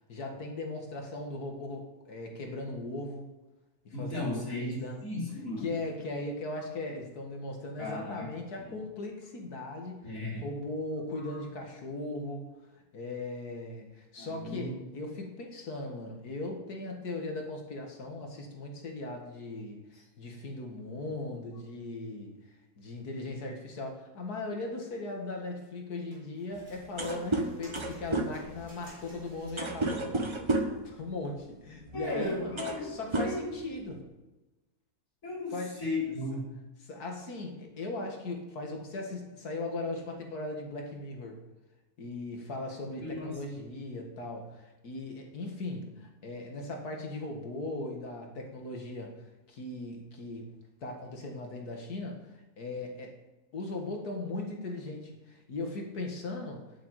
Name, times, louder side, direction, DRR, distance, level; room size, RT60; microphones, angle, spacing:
voice 1, 0.1-3.3 3.9-5.0 5.6-12.5 12.9-19.8 20.2-22.3 22.8-32.5 32.8-34.0 35.5-36.2 36.8-41.4 42.0-49.2 49.5-50.5 50.8-52.3 52.6-53.2 53.5-56.6, left 2 dB, 85° left, 2 dB, 2.3 m, -38 dB
voice 2, 3.9-5.8 7.8-8.3 8.6-8.8 10.0-10.4 11.2-11.4 14.2-14.7 23.3-23.4 31.9-32.9 33.2-33.6 35.2-36.5 43.0-43.6, left 2 dB, 60° left, -4 dB, 4.2 m, -36 dB
sound 1, 26.1-30.0 30.7-30.8, left 1 dB, 30° left, 4.2 m, -53 dB
sound 2, 26.6-26.7 26.9-30.9 31.9-32.0 32.4-32.9 33.1-34.0, right 2 dB, 20° right, 0.9 m, -32 dB
9.2 x 8.2 x 7.9 m, 1.1 s
omnidirectional pair, 1.6 m